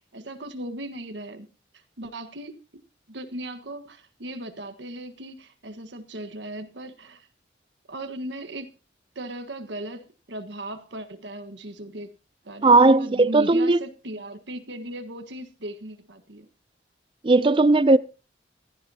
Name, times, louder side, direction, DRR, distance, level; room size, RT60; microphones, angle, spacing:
voice 1, 0.0-1.5 1.7-2.6 3.1-7.3 7.9-8.7 9.1-12.1 12.4-16.5, right 1 dB, 90° right, 1.5 m, -37 dB
voice 2, 12.6-13.8 17.2-18.0, right 3 dB, 30° right, 0.5 m, -17 dB
16.5 x 13.5 x 2.8 m
head